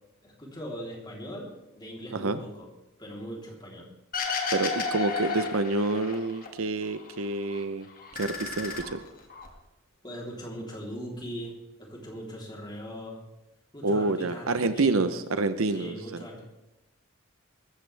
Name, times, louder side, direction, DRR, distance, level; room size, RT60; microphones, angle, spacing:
voice 1, 0.2-2.7 3.0-3.9 10.0-13.2 13.7-15.2 15.7-16.4, equal, 20° left, -2 dB, 3.5 m, -40 dB
sound 1, 4.1-6.5 6.8-7.6 8.0-9.5, left 4 dB, 40° left, 2.1 m, -33 dB
voice 2, 4.5-7.9 8.2-9.0 13.8-16.2, right 3 dB, 75° right, 11 dB, 0.8 m, -28 dB
20.0 x 14.5 x 3.4 m, 0.94 s
head